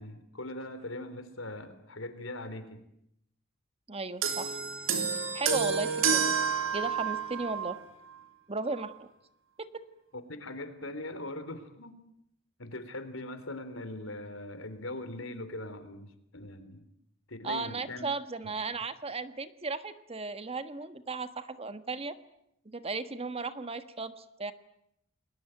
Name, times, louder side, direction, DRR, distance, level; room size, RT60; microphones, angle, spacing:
voice 1, 0.0-2.8 10.1-12.0 12.6-16.8 17.3-18.1, left 1 dB, 75° left, 11 dB, 3.8 m, -41 dB
voice 2, 3.9-4.6 5.3-6.4 6.7-7.8 8.5-9.1 9.6-9.8 17.4-22.1 22.6-24.5, right 3 dB, 30° right, 11 dB, 1.5 m, -35 dB
sound 1, 4.2-7.8 8.7-8.9, right 6 dB, 75° right, 3.8 m, -29 dB
30.0 x 21.0 x 9.1 m, 0.79 s
head